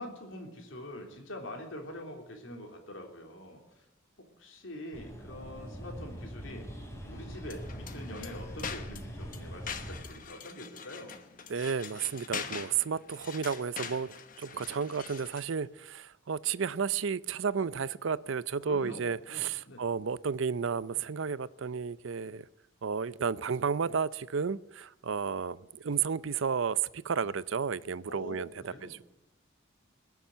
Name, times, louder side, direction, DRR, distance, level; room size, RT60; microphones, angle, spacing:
voice 1, 0.0-3.8 4.4-6.7 7.0-11.1 18.6-19.9 28.1-28.9, left 1 dB, 70° left, 3.3 m, -44 dB
sound 1, 4.9-10.0, equal, 15° left, 3.0 m, -43 dB
sound 2, 7.4-15.5, left 6 dB, 40° left, 1.1 m, -43 dB
voice 2, 11.5-22.4 22.8-26.8 27.0-29.1, right 6 dB, 70° right, 0.5 m, -32 dB
20.5 x 7.2 x 9.1 m
head